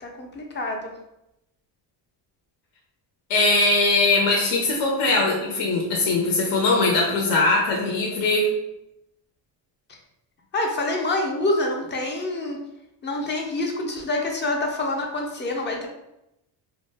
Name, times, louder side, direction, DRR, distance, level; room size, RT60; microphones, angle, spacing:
voice 1, 0.0-0.9 10.5-12.6 13.0-15.9, left 2 dB, 25° left, 1 dB, 0.5 m, -26 dB
voice 2, 3.3-8.5, left 2 dB, 65° left, -1 dB, 0.7 m, -21 dB
2.3 x 2.1 x 3.3 m, 0.88 s
cardioid pair, 110°, 47 cm